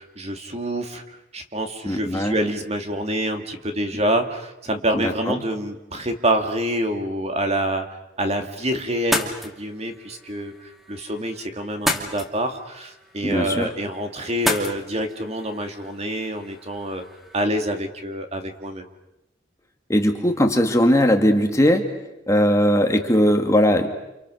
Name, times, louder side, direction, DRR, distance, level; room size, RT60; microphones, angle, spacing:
voice 1, 0.0-7.9 8.2-17.0 17.3-18.9, right 1 dB, 35° right, 5 dB, 2.3 m, -26 dB
voice 2, 1.9-2.4 4.9-5.4 13.2-13.7 19.9-21.9 22.3-23.9, equal, 15° left, 4 dB, 2.1 m, -19 dB
sound 1, 8.9-17.4, left 1 dB, ahead, 2.2 m, -32 dB
29.0 x 28.5 x 6.5 m, 0.91 s
head